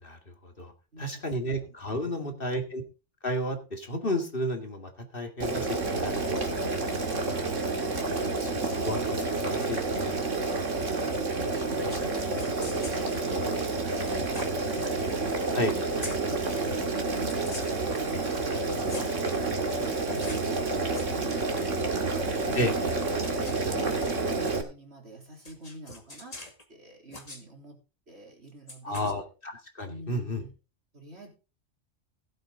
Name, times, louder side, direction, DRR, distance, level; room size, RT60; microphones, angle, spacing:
voice 1, 0.0-0.7 1.0-2.8 3.2-6.4 7.4-7.5 8.1-10.1 11.8-12.0 15.5-15.7 22.5-22.7 28.8-30.4, equal, 45° left, 4 dB, 2.4 m, -32 dB
voice 2, 0.9-1.8 2.1-2.4 12.3-15.9 22.6-26.4 26.7-27.8 28.1-29.1 29.8-30.5 30.9-31.3, right 1 dB, 60° right, 1 dB, 3.8 m, -48 dB
Boiling, 5.4-24.6, right 3 dB, 85° right, 2.4 m, -29 dB
sound 1, 11.9-12.1 12.4-13.0 14.0-14.9 15.6-16.2 17.2-17.9 18.4-19.2 19.7-20.5 20.8-21.1 22.9-24.4 25.4-26.6 27.1-27.4 28.7-29.1, left 2 dB, 30° left, 2.1 m, -43 dB
16.5 x 8.6 x 3.8 m, 0.33 s
omnidirectional pair, 1.3 m